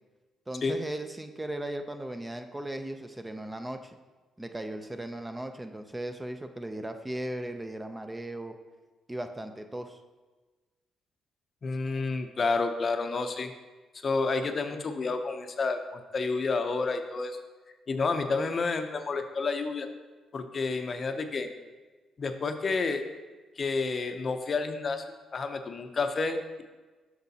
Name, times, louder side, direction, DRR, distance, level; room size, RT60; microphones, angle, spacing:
voice 1, 0.5-3.9 4.4-8.6 9.1-10.0, right 1 dB, 15° right, 6 dB, 0.4 m, -37 dB
voice 2, 11.6-13.5 14.0-17.4 17.9-19.9 20.3-21.5 22.2-23.0 23.6-25.0 25.3-26.6, left 4 dB, 40° left, 7 dB, 0.6 m, -30 dB
8.0 x 6.1 x 2.8 m, 1.3 s
cardioid pair, 90°, 0 cm